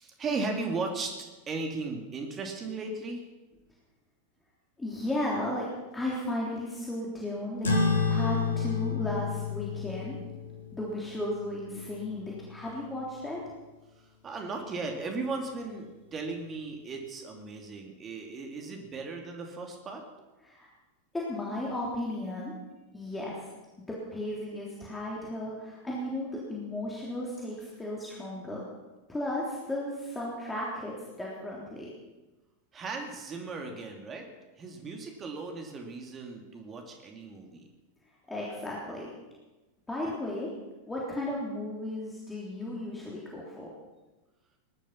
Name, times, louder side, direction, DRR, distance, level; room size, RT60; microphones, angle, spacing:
voice 1, 0.0-3.2 14.0-20.0 32.7-34.3 34.6-37.7, right 3 dB, 25° right, 2 dB, 2.6 m, -36 dB
voice 2, 4.8-5.7 5.9-7.7 8.1-10.2 10.7-13.4 20.4-20.7 21.1-22.5 22.9-23.5 23.8-28.6 29.1-31.9 38.3-39.1 39.9-40.5 40.9-43.7, left 1 dB, 10° left, -4 dB, 3.5 m, -35 dB
sound 1, 7.6-12.5, left 4 dB, 70° left, 2.7 m, -30 dB
19.5 x 12.0 x 5.9 m, 1.1 s
figure-of-eight pair, 90°, 0 cm